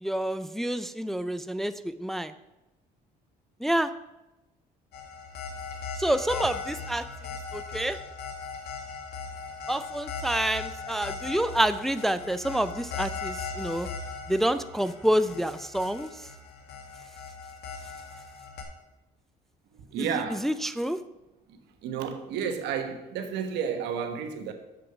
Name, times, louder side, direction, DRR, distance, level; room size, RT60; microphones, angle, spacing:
voice 1, 0.0-2.3 3.6-3.9 6.0-7.1 7.5-8.0 9.7-13.9 14.3-16.1 20.4-21.0, right 1 dB, ahead, 0.4 m, -28 dB
sound 1, 4.9-18.6, left 4 dB, 75° left, 1.6 m, -38 dB
voice 2, 19.7-20.5 21.5-24.5, right 7 dB, 85° right, 1.2 m, -32 dB
7.3 x 6.5 x 5.9 m
cardioid pair, 110°, 17 cm